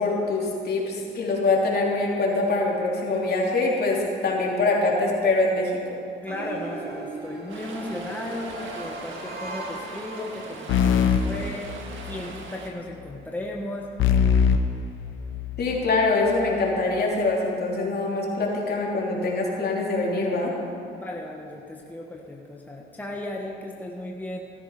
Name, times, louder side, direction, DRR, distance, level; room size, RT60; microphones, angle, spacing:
voice 1, 0.0-5.7 15.6-20.5, left 3 dB, 55° left, -3 dB, 3.3 m, -24 dB
voice 2, 6.2-11.7 12.0-13.9 21.0-24.4, left 1 dB, 10° left, -1 dB, 1.4 m, -35 dB
sound 1, 6.3-10.9, right 2 dB, 55° right, 2.2 m, -38 dB
Stream, 7.5-12.7, right 3 dB, 75° right, 1.8 m, -41 dB
sound 2, 10.7-12.3 14.0-15.8, left 7 dB, 80° left, 0.9 m, -22 dB
15.5 x 13.0 x 5.0 m, 2.4 s
cardioid pair, 90°, 20 cm